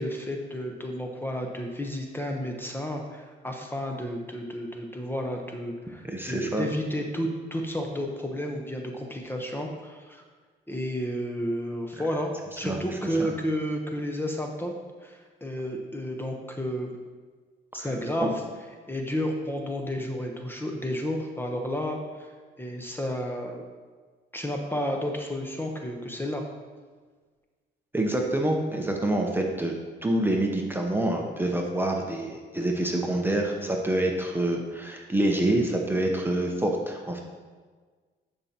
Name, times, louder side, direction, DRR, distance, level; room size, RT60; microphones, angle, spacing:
voice 1, 0.0-10.2 10.7-14.7 15.0-16.9 17.7-18.4 18.9-22.3 22.6-23.6 24.3-26.4, equal, 10° left, 2 dB, 0.9 m, -31 dB
voice 2, 6.1-6.6 12.6-13.3 17.8-17.9 18.2-18.3 27.9-29.7 30.0-37.2, right 1 dB, 10° right, 1 dB, 0.9 m, -27 dB
10.5 x 5.4 x 2.9 m, 1.5 s
cardioid pair, 90°, 20 cm